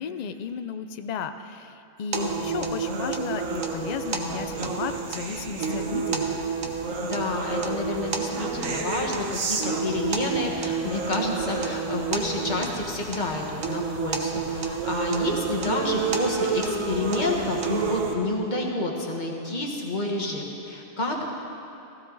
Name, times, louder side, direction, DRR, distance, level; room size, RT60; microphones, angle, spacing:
voice 1, 0.0-6.4, left 6 dB, 85° left, 9 dB, 0.3 m, -34 dB
sound 1, 2.1-18.1, right 4 dB, 80° right, 1.5 m, -29 dB
voice 2, 7.0-21.3, left 2 dB, 35° left, 0 dB, 1.5 m, -29 dB
15.5 x 15.5 x 3.9 m, 2.9 s
omnidirectional pair, 1.4 m